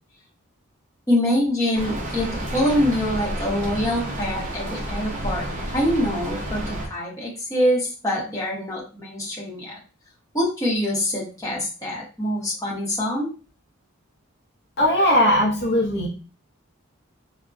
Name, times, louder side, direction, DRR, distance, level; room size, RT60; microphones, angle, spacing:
voice 1, 1.1-9.7 10.3-13.3, left 1 dB, 15° left, -4 dB, 0.8 m, -25 dB
Rain, 1.7-6.9, right 1 dB, 35° right, 0.6 m, -30 dB
voice 2, 14.8-16.1, left 1 dB, 50° left, -2 dB, 0.5 m, -19 dB
3.6 x 2.1 x 2.4 m, 0.35 s
head